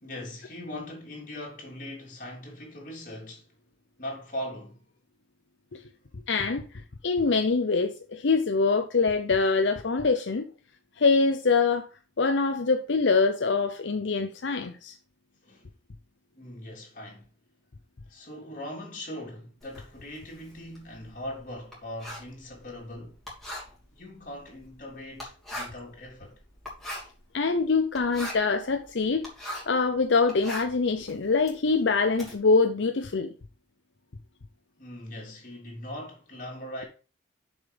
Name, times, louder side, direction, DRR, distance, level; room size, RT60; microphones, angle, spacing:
voice 1, 0.0-3.5 4.0-4.8 15.4-15.7 16.3-17.3 18.1-23.2 23.9-26.4 34.8-36.8, left 1 dB, 45° left, 3.3 m, -40 dB
voice 2, 6.3-10.5 11.0-11.9 12.2-14.9 27.3-29.2 29.7-33.3, left 4 dB, 75° left, 0.7 m, -24 dB
Writing, 19.6-29.8 30.2-32.3, left 1 dB, ahead, 3.1 m, -41 dB
7.0 x 5.2 x 5.3 m
head